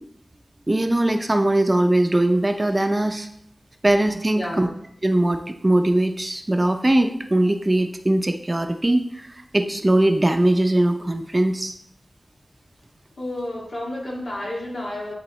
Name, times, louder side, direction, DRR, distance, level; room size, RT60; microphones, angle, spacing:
voice 1, 0.7-3.3 3.8-4.7 5.0-11.7, right 1 dB, 30° right, 6 dB, 0.5 m, -20 dB
voice 2, 4.3-4.7 13.2-15.1, left 1 dB, 80° left, -4 dB, 2.0 m, -30 dB
11.0 x 3.8 x 3.1 m, 0.73 s
wide cardioid pair, 55°, 0 cm